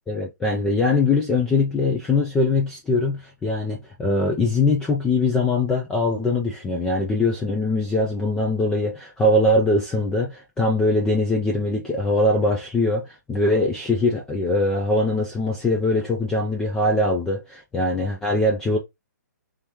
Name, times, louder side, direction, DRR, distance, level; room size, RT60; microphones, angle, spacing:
voice 1, 0.1-18.8, left 2 dB, 5° left, 0.4 m, -22 dB
3.3 x 3.0 x 3.5 m
hypercardioid pair, 155°, 10 cm